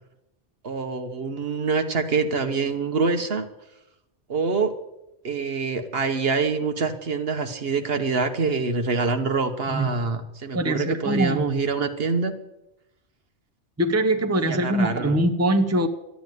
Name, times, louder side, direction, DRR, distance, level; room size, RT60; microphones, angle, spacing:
voice 1, 0.6-3.5 4.3-4.7 5.2-12.3 14.4-15.2, right 4 dB, 55° right, 7 dB, 1.3 m, -25 dB
voice 2, 10.5-11.5 13.8-15.9, right 1 dB, 15° right, 6 dB, 0.8 m, -22 dB
13.0 x 9.5 x 9.2 m, 0.91 s
omnidirectional pair, 1.2 m